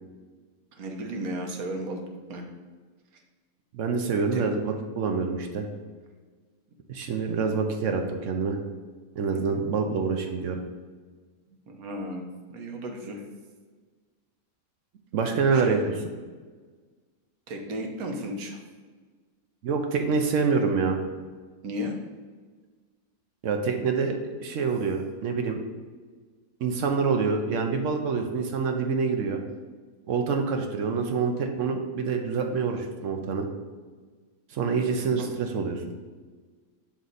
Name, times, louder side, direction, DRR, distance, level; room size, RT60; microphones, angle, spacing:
voice 1, 0.7-2.0 2.3-2.5 3.1-3.2 4.3-4.4 9.3-9.6 11.5-13.2 15.5-15.8 17.5-18.6 21.6-21.9 35.2-35.3, equal, 85° right, 3 dB, 1.4 m, -35 dB
voice 2, 3.7-5.7 6.9-8.6 9.2-10.6 15.1-15.8 19.6-21.0 23.4-25.6 26.6-29.4 30.1-33.5 34.5-35.8, right 5 dB, 65° right, 4 dB, 0.9 m, -26 dB
6.4 x 4.1 x 4.0 m, 1.4 s
omnidirectional pair, 1.5 m